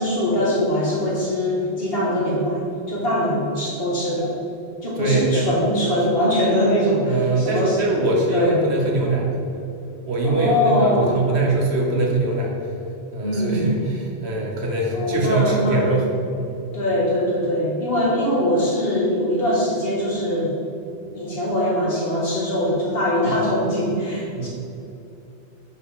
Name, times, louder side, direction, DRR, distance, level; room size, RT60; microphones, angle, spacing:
voice 1, 0.0-2.6 2.9-4.3 4.8-7.8 8.3-8.6 10.2-11.1 13.2-13.6 14.9-15.8 16.7-20.5 21.1-24.5, equal, 65° left, -5 dB, 2.0 m, -22 dB
voice 2, 5.0-5.5 7.0-9.3 10.1-12.5 13.1-16.1 16.4-16.6 23.3-23.4 24.3-24.5, right 2 dB, 80° right, -1 dB, 1.5 m, -22 dB
6.4 x 5.2 x 5.0 m, 2.7 s
omnidirectional pair, 1.1 m